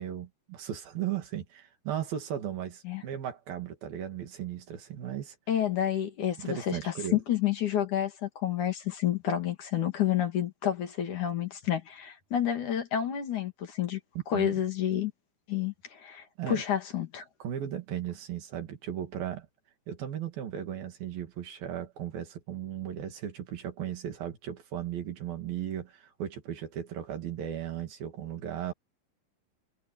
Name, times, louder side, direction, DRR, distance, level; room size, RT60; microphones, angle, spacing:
voice 1, 0.0-5.4 6.4-7.2 14.3-14.6 16.4-16.6 17.4-19.5 19.9-28.7, right 10 dB, 80° right, 4.4 m, -36 dB
voice 2, 5.5-14.0 14.3-15.1 15.5-17.3, left 10 dB, 60° left, 3.9 m, -29 dB
omnidirectional pair, 4.1 m